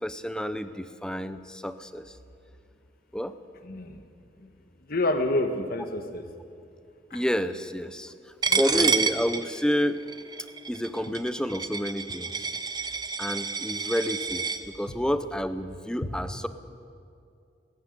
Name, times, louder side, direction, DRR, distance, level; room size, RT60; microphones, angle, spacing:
voice 1, 0.0-2.0 3.1-3.3 7.1-8.1 8.5-10.0 10.7-12.5 13.2-16.5, equal, 5° left, 11 dB, 0.7 m, -29 dB
voice 2, 3.7-4.0 4.9-6.2 7.1-7.2 8.5-8.9 16.0-16.1, left 2 dB, 55° left, 6 dB, 1.4 m, -28 dB
Coin (dropping), 8.4-14.6, right 5 dB, 20° right, 0.9 m, -29 dB
18.0 x 15.5 x 9.7 m, 2.4 s
head